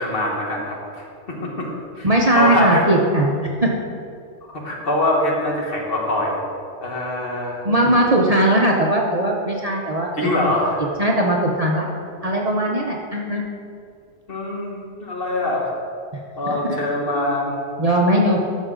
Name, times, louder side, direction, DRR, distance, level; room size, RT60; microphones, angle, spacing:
voice 1, 0.0-1.7 2.0-2.8 4.6-6.4 6.8-7.7 10.2-10.8 14.3-15.7 16.4-17.6, left 1 dB, 50° left, -2 dB, 1.7 m, -23 dB
voice 2, 2.0-3.3 3.6-3.7 7.6-10.3 11.0-11.9 12.2-13.4 16.6-16.8 17.8-18.4, right 1 dB, 35° right, -2 dB, 0.8 m, -19 dB
12.5 x 6.3 x 3.8 m, 2.4 s
omnidirectional pair, 1.3 m